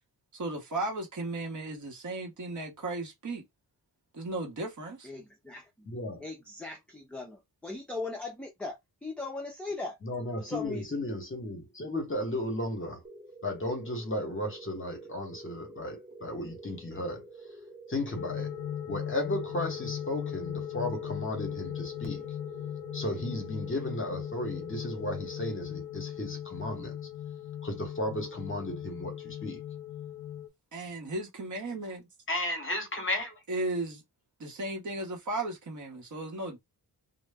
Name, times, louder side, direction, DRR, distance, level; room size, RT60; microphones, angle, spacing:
voice 1, 0.3-3.4 4.1-5.1 30.7-32.1 33.5-34.0 34.4-36.6, right 2 dB, 50° right, 0.8 m, -35 dB
voice 2, 5.0-5.9 6.2-8.8 9.0-10.0 10.4-11.0, left 3 dB, 5° left, 0.3 m, -39 dB
voice 3, 5.8-6.2 10.0-13.0 13.4-17.3 17.9-18.5 18.9-22.2 22.9-27.0 27.6-29.6 32.3-33.4, left 1 dB, 30° left, 0.8 m, -34 dB
sound 1, 13.0-26.2, right 2 dB, 20° right, 1.0 m, -49 dB
sound 2, 18.2-30.5, left 10 dB, 70° left, 0.5 m, -38 dB
2.0 x 2.0 x 3.3 m
wide cardioid pair, 150°, 40 cm